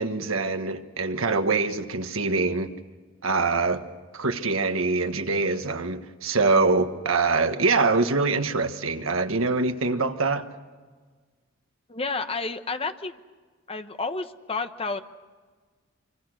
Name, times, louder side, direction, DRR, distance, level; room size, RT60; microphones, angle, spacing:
voice 1, 0.0-2.7 3.2-3.8 4.1-10.4, right 3 dB, 80° right, 1.5 m, -24 dB
voice 2, 11.9-13.2 13.7-15.0, left 3 dB, 30° left, 1.1 m, -30 dB
26.0 x 25.5 x 6.5 m
head